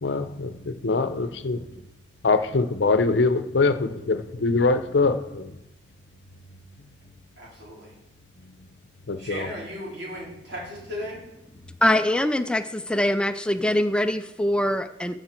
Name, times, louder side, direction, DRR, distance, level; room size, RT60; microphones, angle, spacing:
voice 1, 0.0-1.8 2.2-5.6 8.4-8.5 9.1-9.5, left 3 dB, 80° left, 0.7 m, -23 dB
voice 2, 7.4-8.0 9.2-11.2, equal, 85° right, 4.3 m, -36 dB
voice 3, 11.8-15.2, left 1 dB, 5° left, 0.4 m, -23 dB
14.0 x 6.7 x 4.4 m
head